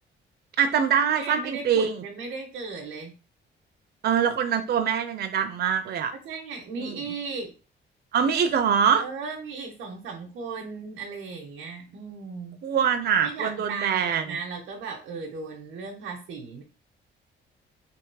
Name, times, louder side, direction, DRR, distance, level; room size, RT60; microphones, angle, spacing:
voice 1, 0.6-1.9 4.0-6.1 6.8-7.0 8.1-9.0 12.6-14.2, right 7 dB, 55° right, 7 dB, 0.6 m, -23 dB
voice 2, 1.2-3.2 6.2-7.5 8.2-8.3 9.0-12.6 13.2-16.6, right 4 dB, 85° right, 0 dB, 1.0 m, -36 dB
3.5 x 2.9 x 4.7 m, 0.34 s
cardioid pair, 90°, 20 cm